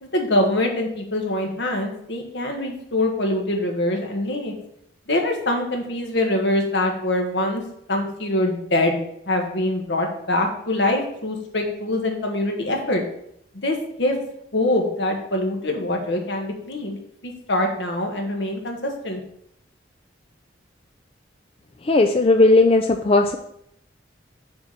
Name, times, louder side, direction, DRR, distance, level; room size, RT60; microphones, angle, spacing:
voice 1, 0.0-4.5 5.1-7.6 7.9-9.0 9.3-13.0 13.6-14.2 14.5-19.2, left 1 dB, 70° left, 2 dB, 1.6 m, -24 dB
voice 2, 21.8-23.4, left 2 dB, 30° left, 5 dB, 0.4 m, -16 dB
6.9 x 4.3 x 6.5 m, 0.75 s
head